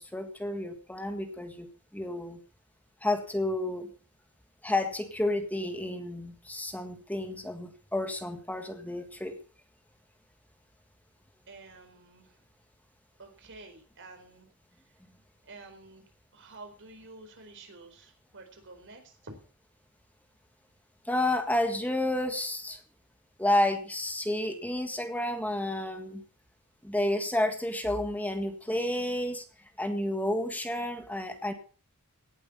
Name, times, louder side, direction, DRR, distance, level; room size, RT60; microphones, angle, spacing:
voice 1, 0.0-1.7 1.9-2.4 3.0-3.9 4.6-9.4 21.1-22.8 23.4-26.2 26.8-29.4 29.8-31.5, left 1 dB, 5° left, 6 dB, 1.7 m, -30 dB
voice 2, 11.5-12.4 13.2-14.5 15.4-19.4, right 2 dB, 60° right, 5 dB, 4.4 m, -50 dB
18.0 x 8.5 x 5.5 m, 0.38 s
head